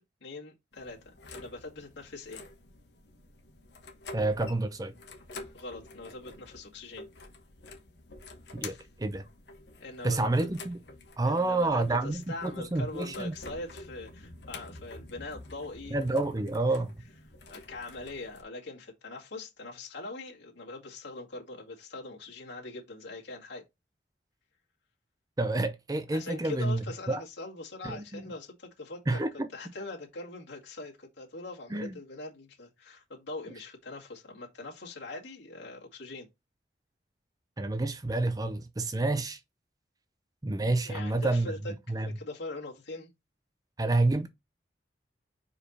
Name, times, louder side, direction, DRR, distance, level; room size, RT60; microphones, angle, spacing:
voice 1, 0.2-2.4 5.5-7.1 9.8-10.5 11.3-16.0 17.5-23.6 26.1-29.2 29.5-36.3 40.8-43.1, left 2 dB, 85° left, 2.2 m, -42 dB
sound 1, 0.7-18.4, left 3 dB, 65° left, 1.3 m, -48 dB
voice 2, 4.1-4.9 8.5-9.2 10.0-10.8 11.2-13.4 15.9-16.9 25.4-27.2 27.8-28.2 29.1-29.5 31.7-31.9 37.6-39.4 40.4-42.1 43.8-44.3, right 2 dB, 20° right, 0.5 m, -29 dB
5.0 x 4.7 x 4.1 m
head